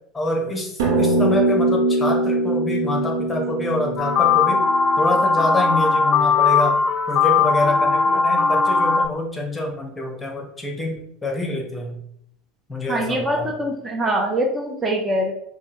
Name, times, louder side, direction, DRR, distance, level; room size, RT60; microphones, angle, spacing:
voice 1, 0.1-4.6 5.0-6.8 7.1-12.0 12.7-13.5, left 1 dB, 15° left, 1 dB, 1.1 m, -26 dB
sound 1, 0.8-5.5, right 2 dB, 75° right, 0.8 m, -22 dB
sound 2, 4.0-9.1, left 5 dB, 40° left, 0.4 m, -18 dB
voice 2, 12.9-15.3, right 1 dB, 25° right, 1 dB, 0.7 m, -23 dB
5.2 x 2.2 x 3.0 m, 0.72 s
hypercardioid pair, 80°, 0 cm